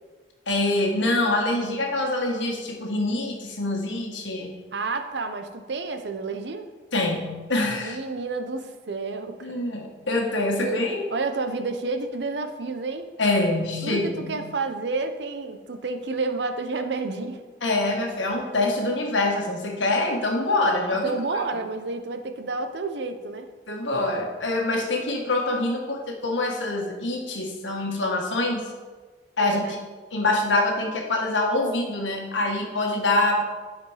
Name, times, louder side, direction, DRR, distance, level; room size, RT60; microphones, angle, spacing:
voice 1, 0.5-4.5 6.9-8.0 9.4-11.1 13.2-14.4 17.6-21.1 23.7-28.7 29.4-29.6 30.1-33.4, left 2 dB, 85° left, 1 dB, 1.5 m, -25 dB
voice 2, 4.7-6.7 7.8-9.6 10.6-10.8 11.1-13.1 13.8-17.4 21.0-23.5 29.4-29.8, right 3 dB, 65° right, 8 dB, 0.7 m, -30 dB
10.0 x 5.0 x 4.9 m, 1.3 s
head